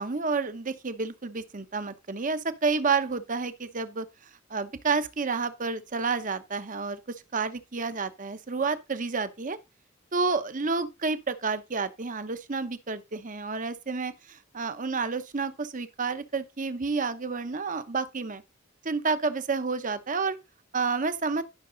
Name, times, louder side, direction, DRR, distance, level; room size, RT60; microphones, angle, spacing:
voice 1, 0.0-4.1 4.5-7.0 7.3-9.6 10.1-18.4 18.8-20.4 20.7-21.4, right 4 dB, 40° right, 0.9 m, -30 dB
12.5 x 5.9 x 3.9 m
head